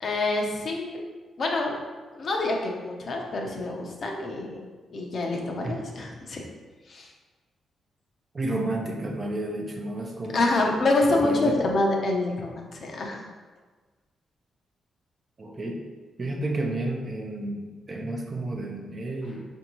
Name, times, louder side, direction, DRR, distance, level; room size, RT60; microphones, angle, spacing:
voice 1, 0.0-1.0 1.4-1.7 2.1-6.4 6.9-7.1 10.3-13.3, left 2 dB, 55° left, 0 dB, 0.6 m, -26 dB
voice 2, 8.3-10.4 11.1-11.6 15.4-15.8 16.2-19.5, right 2 dB, 35° right, 1 dB, 0.6 m, -31 dB
4.4 x 2.6 x 2.9 m, 1.4 s
cardioid pair, 85°, 0 cm